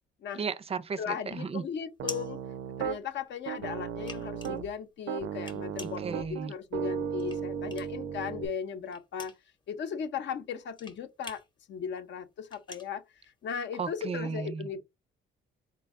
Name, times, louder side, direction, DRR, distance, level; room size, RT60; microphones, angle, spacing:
voice 1, 0.3-1.6 6.0-6.5 13.8-14.8, right 5 dB, 30° right, 0.4 m, -35 dB
sound 1, 0.7-3.3 3.7-8.1 8.4-13.9, left 3 dB, 25° left, 0.8 m, -46 dB
voice 2, 1.0-2.4 2.8-9.3 9.7-11.4 11.7-13.0 13.4-14.8, left 7 dB, 65° left, 0.7 m, -37 dB
Piano, 2.0-3.0 3.5-4.7 5.1-8.5, right 8 dB, 85° right, 0.6 m, -35 dB
4.2 x 2.2 x 3.5 m
cardioid pair, 90°, 20 cm